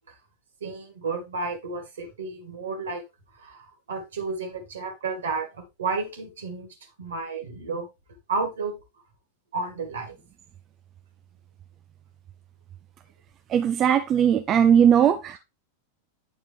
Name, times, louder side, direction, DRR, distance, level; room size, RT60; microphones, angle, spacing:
voice 1, 0.6-3.0 3.4-6.7 7.0-7.9 8.3-8.8 9.5-10.2, right 4 dB, 65° right, 2.2 m, -32 dB
voice 2, 13.5-15.4, right 8 dB, 30° right, 0.5 m, -19 dB
9.5 x 4.4 x 3.5 m
figure-of-eight pair, 90°, 0 cm